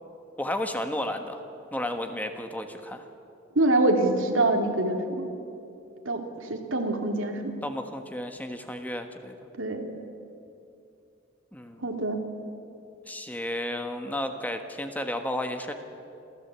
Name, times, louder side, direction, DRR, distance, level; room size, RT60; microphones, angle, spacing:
voice 1, 0.4-1.4 1.7-3.1 7.6-9.3 11.5-11.8 13.1-15.7, left 1 dB, 10° left, 6 dB, 1.4 m, -32 dB
voice 2, 3.6-5.3 6.1-7.5 9.6-9.9 11.8-12.2, right 2 dB, 85° right, 3 dB, 2.5 m, -25 dB
27.0 x 15.0 x 8.2 m, 2.6 s
head